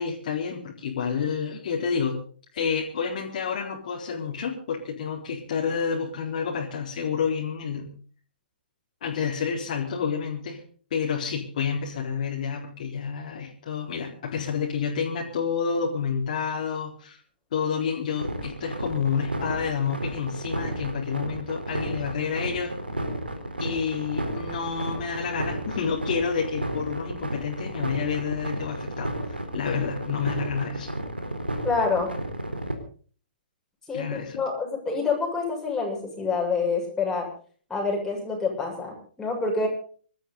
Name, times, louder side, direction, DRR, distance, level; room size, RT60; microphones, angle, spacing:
voice 1, 0.0-2.2 2.5-7.9 9.0-10.6 10.9-17.2 17.5-22.7 23.6-30.9 33.9-34.4, left 6 dB, 50° left, -2 dB, 4.1 m, -29 dB
sound 1, 18.2-32.7, right 1 dB, 85° right, 3.9 m, -32 dB
voice 2, 31.6-32.1 33.9-34.1 34.4-37.3 37.7-39.7, left 4 dB, 10° left, -2 dB, 7.3 m, -27 dB
26.0 x 12.5 x 4.0 m, 0.44 s
figure-of-eight pair, 120°, 5 cm